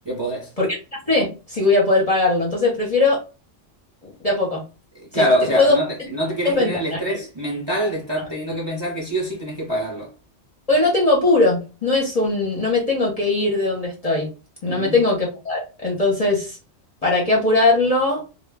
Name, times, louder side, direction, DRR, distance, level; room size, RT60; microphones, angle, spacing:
voice 1, 0.1-0.5 4.9-10.1 14.7-15.0, equal, 30° right, 0.5 m, -25 dB
voice 2, 1.1-3.2 4.0-4.6 5.1-5.3 5.5-5.8 6.4-7.2 10.7-14.3 14.6-16.6 17.0-18.2, left 2 dB, 40° left, 0.6 m, -20 dB
2.1 x 2.0 x 3.3 m
omnidirectional pair, 1.3 m